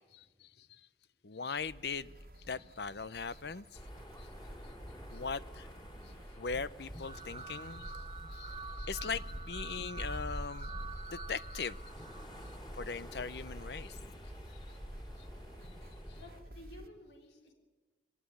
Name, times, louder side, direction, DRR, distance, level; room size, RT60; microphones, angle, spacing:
voice 1, 0.1-0.8 1.2-2.1 2.5-3.8 4.2-4.3 5.1-5.7 6.0-11.8 12.7-14.0 16.1-16.2, left 5 dB, 65° left, 17 dB, 0.7 m, -40 dB
sound 1, 1.6-16.9, right 1 dB, 55° right, 1.4 m, -54 dB
sound 2, 3.7-16.4, equal, 25° left, 4.3 m, -46 dB
sound 3, 7.0-13.1, right 4 dB, 25° right, 0.7 m, -48 dB
voice 2, 15.4-17.5, left 1 dB, 85° left, 2 dB, 3.7 m, -57 dB
23.0 x 18.5 x 9.9 m, 1.3 s
head